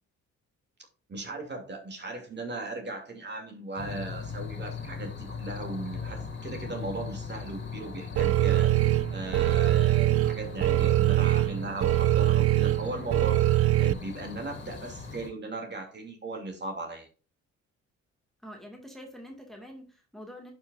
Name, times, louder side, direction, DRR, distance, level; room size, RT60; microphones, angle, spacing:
voice 1, 1.1-17.1, right 2 dB, 35° right, 2.6 m, -37 dB
sound 1, 3.8-15.3, left 5 dB, 35° left, 2.7 m, -40 dB
sound 2, 8.2-13.9, right 15 dB, 50° right, 0.4 m, -23 dB
voice 2, 18.4-20.5, equal, ahead, 2.0 m, -45 dB
11.0 x 5.4 x 2.5 m
cardioid pair, 90°, 30 cm